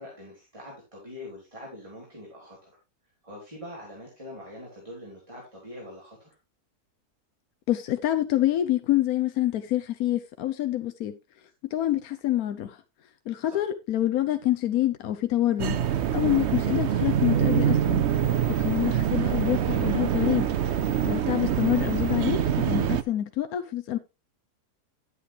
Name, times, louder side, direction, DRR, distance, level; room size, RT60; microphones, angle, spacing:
voice 1, 0.0-2.7 3.2-6.3 13.5-13.7 21.1-21.3, left 1 dB, 20° right, 3.3 m, -43 dB
voice 2, 7.7-11.2 11.7-12.8 13.3-15.8 16.1-18.1 18.5-20.5 21.1-24.0, left 13 dB, 75° left, 1.2 m, -26 dB
sound 1, 15.6-23.0, right 9 dB, 55° right, 0.8 m, -25 dB
11.0 x 8.1 x 3.1 m
omnidirectional pair, 1.6 m